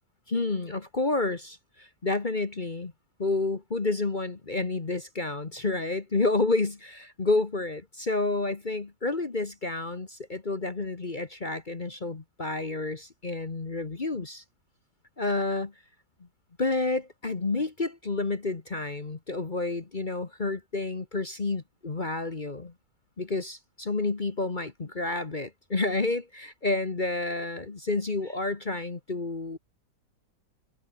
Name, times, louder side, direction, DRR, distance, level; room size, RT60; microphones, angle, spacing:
voice 1, 0.3-2.9 3.2-14.4 15.2-15.7 16.6-22.7 23.2-29.6, left 3 dB, 30° left, 1.4 m, -30 dB
omnidirectional pair, 1.9 m